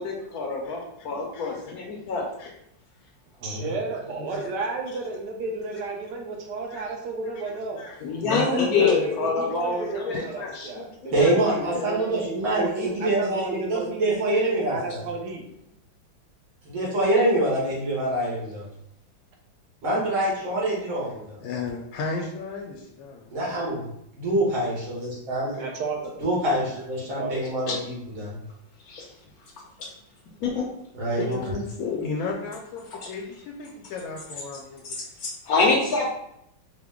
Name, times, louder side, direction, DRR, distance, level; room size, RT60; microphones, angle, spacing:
voice 1, 0.0-2.5 8.0-11.9 27.7-27.8 28.9-29.1 29.8-29.9 30.4-30.7 31.2-32.2 32.9-33.1 34.8-36.1, left 4 dB, 70° left, 0 dB, 0.9 m, -27 dB
voice 2, 3.4-7.8 8.4-8.5 8.7-11.6 11.8-15.5 25.6-26.2 27.2-27.3, right 3 dB, 65° right, 0 dB, 1.3 m, -32 dB
voice 3, 4.2-4.5 6.7-6.8 7.8-8.0 8.2-9.1 9.7-9.8 21.4-23.3 25.5-25.7 31.1-31.2 32.0-35.0, left 4 dB, 85° left, 0 dB, 1.4 m, -34 dB
voice 4, 11.1-15.0 16.7-18.6 19.8-21.4 23.3-23.9 24.1-25.5 26.2-28.4 30.9-31.4, right 1 dB, 85° right, -6 dB, 2.4 m, -25 dB
5.0 x 2.1 x 3.6 m, 0.77 s
omnidirectional pair, 2.1 m